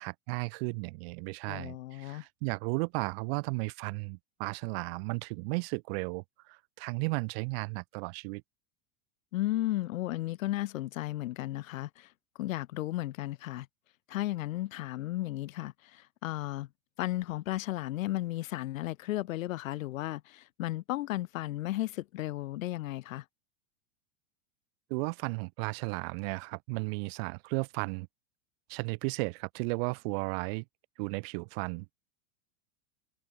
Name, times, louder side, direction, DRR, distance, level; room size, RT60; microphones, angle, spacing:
voice 1, 0.0-8.4 24.9-28.1 28.7-30.6 31.0-31.9, right 31 dB, 45° right, 2.4 m, -34 dB
voice 2, 1.5-2.2 9.3-12.1 12.4-13.7 14.1-16.7 17.0-23.2, left 16 dB, 70° left, 4.4 m, -34 dB
supercardioid pair, 165°, 41 cm